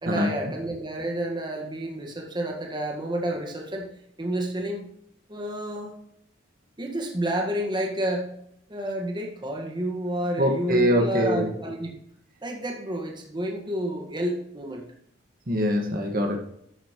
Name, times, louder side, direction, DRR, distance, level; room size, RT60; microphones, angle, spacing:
voice 1, 0.0-3.9 4.2-4.9 5.3-5.9 6.8-8.3 8.7-11.9 12.4-14.9, right 1 dB, 25° right, 1 dB, 1.7 m, -30 dB
voice 2, 10.4-11.5 15.5-16.4, equal, 50° right, 3 dB, 1.7 m, -23 dB
11.5 x 8.7 x 3.1 m, 0.74 s
head